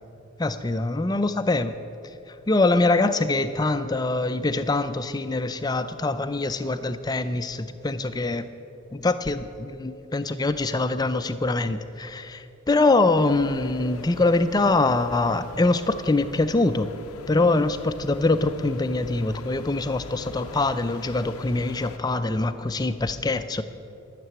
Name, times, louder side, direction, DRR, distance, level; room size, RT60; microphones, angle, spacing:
voice 1, 0.4-1.7 2.5-8.5 8.9-16.9 17.3-23.6, left 2 dB, 20° left, 11 dB, 0.4 m, -24 dB
sound 1, 13.2-22.0, left 4 dB, 80° left, 0.5 m, -43 dB
12.5 x 6.8 x 8.7 m, 2.9 s
head